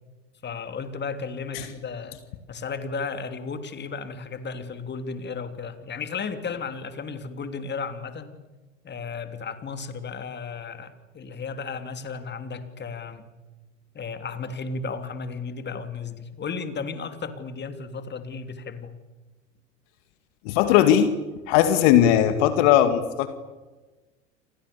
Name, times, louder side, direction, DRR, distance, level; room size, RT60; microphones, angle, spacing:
voice 1, 0.4-2.2 2.5-8.4 8.8-13.3 13.9-18.9, left 5 dB, 25° left, 9 dB, 3.3 m, -34 dB
voice 2, 20.5-21.1 21.5-23.3, left 11 dB, 60° left, 10 dB, 2.3 m, -18 dB
30.0 x 25.5 x 7.0 m, 1.2 s
hypercardioid pair, 85°, 38 cm